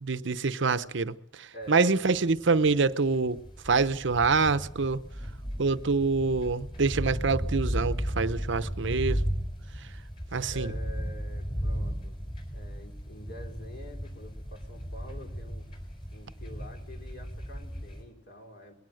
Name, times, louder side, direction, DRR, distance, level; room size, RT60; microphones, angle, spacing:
voice 1, 0.0-3.4 3.6-5.0 5.6-9.2 10.3-10.7, right 4 dB, 65° right, 0.8 m, -26 dB
voice 2, 1.5-2.0 10.5-12.2 12.5-15.7 16.1-18.7, equal, 55° left, 4.1 m, -47 dB
sound 1, 1.8-1.9 2.1-18.0, equal, 25° left, 5.6 m, -35 dB
21.0 x 17.0 x 7.8 m
head